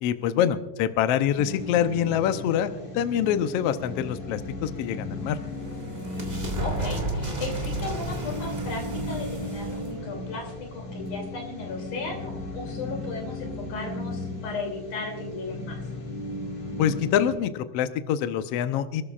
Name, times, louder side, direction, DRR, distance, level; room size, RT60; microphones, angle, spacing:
voice 1, 0.0-2.7 2.9-5.4 16.8-19.0, left 10 dB, 85° left, 10 dB, 1.4 m, -25 dB
sound 1, 1.4-17.3, left 2 dB, 45° left, 3.7 m, -36 dB
sound 2, 5.0-11.5, right 1 dB, 20° right, 1.3 m, -34 dB
voice 2, 6.6-15.8, left 3 dB, 65° left, 1 dB, 4.4 m, -36 dB
27.0 x 13.5 x 2.4 m, 1.1 s
omnidirectional pair, 3.7 m